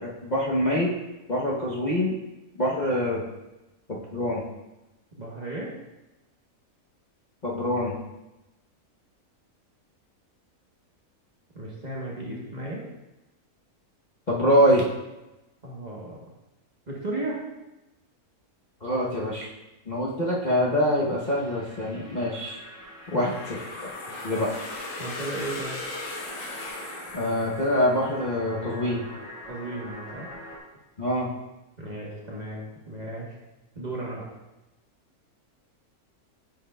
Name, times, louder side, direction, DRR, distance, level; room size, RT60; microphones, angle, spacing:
voice 1, 0.0-0.9 1.3-2.1 2.6-3.2 3.9-4.4 7.4-8.0 14.3-14.8 18.8-19.5 19.9-22.6 23.1-23.3 23.8-23.9 24.2-24.5 27.1-29.0 31.0-31.3, equal, 35° left, -6 dB, 0.8 m, -24 dB
voice 2, 5.2-5.7 11.5-12.8 15.6-16.2 16.9-17.4 25.0-25.8 29.5-30.3 31.8-33.4 33.7-34.3, right 2 dB, 35° right, -4 dB, 1.0 m, -35 dB
sound 1, 21.2-30.6, equal, 5° right, 0.9 m, -44 dB
sound 2, 23.1-28.0, left 2 dB, 60° left, 1.2 m, -38 dB
8.9 x 5.6 x 2.2 m, 0.99 s
omnidirectional pair, 1.6 m